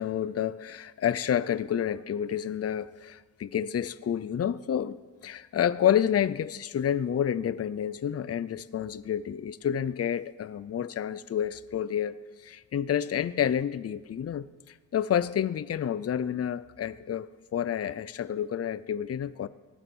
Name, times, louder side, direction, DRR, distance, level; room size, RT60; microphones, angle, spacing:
voice 1, 0.0-19.5, left 9 dB, 45° left, 16 dB, 0.5 m, -29 dB
18.5 x 11.5 x 6.2 m, 1.3 s
wide cardioid pair, 115°, 34 cm